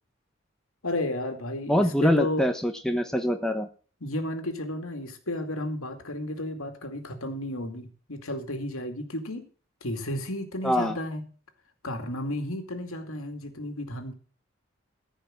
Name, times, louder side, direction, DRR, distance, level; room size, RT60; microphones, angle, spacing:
voice 1, 0.8-2.5 4.0-9.5 9.8-11.2 11.8-14.1, left 1 dB, 80° left, 6 dB, 2.4 m, -33 dB
voice 2, 1.7-3.7 10.6-11.0, equal, 5° left, 5 dB, 1.0 m, -24 dB
14.5 x 5.6 x 7.6 m, 0.39 s
head